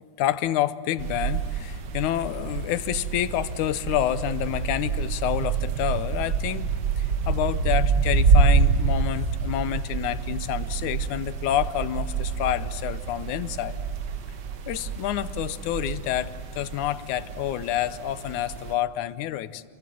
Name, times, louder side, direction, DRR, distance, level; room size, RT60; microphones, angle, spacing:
voice 1, 0.2-13.8 14.7-19.6, left 12 dB, 80° left, 14 dB, 2.3 m, -28 dB
sound 1, 1.0-18.7, right 5 dB, 60° right, 1.1 m, -27 dB
29.0 x 23.5 x 7.7 m, 2.2 s
omnidirectional pair, 3.5 m